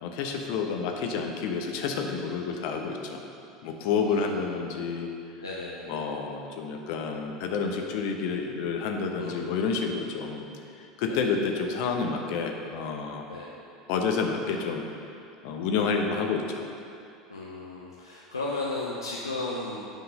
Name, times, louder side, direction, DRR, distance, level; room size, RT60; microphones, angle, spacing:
voice 1, 0.0-3.2 3.6-5.1 5.9-10.4 10.8-13.3 13.9-14.8 15.4-16.4, left 5 dB, 60° left, 3 dB, 0.9 m, -29 dB
voice 2, 4.0-4.5 5.4-6.0 9.1-9.7 11.1-11.3 13.3-13.5 17.3-19.9, left 2 dB, 85° left, -4 dB, 0.7 m, -35 dB
8.2 x 5.9 x 5.4 m, 2.6 s
figure-of-eight pair, 75°, 2 cm